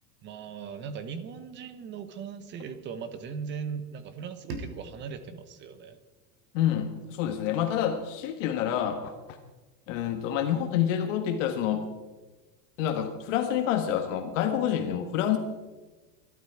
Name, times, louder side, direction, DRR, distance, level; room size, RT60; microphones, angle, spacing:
voice 1, 0.2-6.0, right 6 dB, 25° right, 11 dB, 0.9 m, -39 dB
sound 1, 4.5-7.4, right 3 dB, 80° right, 3.2 m, -44 dB
voice 2, 6.5-9.4 9.9-11.9 12.8-15.4, left 10 dB, 55° left, 6 dB, 1.5 m, -28 dB
21.5 x 12.0 x 4.7 m, 1.2 s
supercardioid pair, 155°, 44 cm